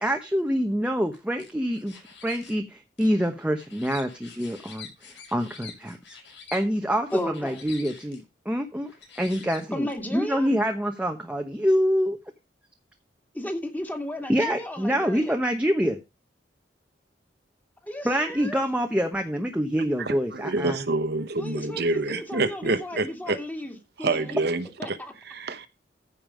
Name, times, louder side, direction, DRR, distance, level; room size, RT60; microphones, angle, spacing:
voice 1, 0.0-1.9 2.2-4.9 5.3-6.0 6.5-7.1 7.3-8.9 9.2-12.2 14.3-16.0 18.0-20.8, equal, 5° right, 1.1 m, -26 dB
sound 1, 1.1-2.5 3.0-6.6 7.1-8.2 8.9-9.9, left 6 dB, 90° left, 5.3 m, -46 dB
voice 2, 7.1-7.7 9.7-10.5 13.3-15.3 17.8-18.6 21.4-24.4 24.8-25.1, left 1 dB, 10° left, 2.3 m, -34 dB
voice 3, 20.0-23.4 24.0-25.7, right 3 dB, 65° right, 1.1 m, -27 dB
14.5 x 5.5 x 5.1 m
head